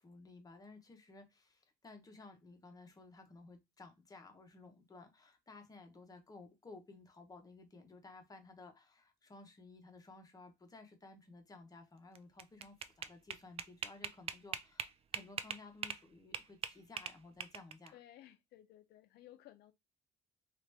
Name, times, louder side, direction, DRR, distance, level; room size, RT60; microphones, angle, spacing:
voice 1, 0.0-18.0, left 3 dB, 20° left, 0.9 m, -56 dB
sound 1, 12.2-16.0 16.3-17.9, right 7 dB, 35° right, 0.4 m, -41 dB
voice 2, 17.9-19.7, left 13 dB, 75° left, 0.6 m, -58 dB
2.9 x 2.5 x 3.3 m
cardioid pair, 110°, 17 cm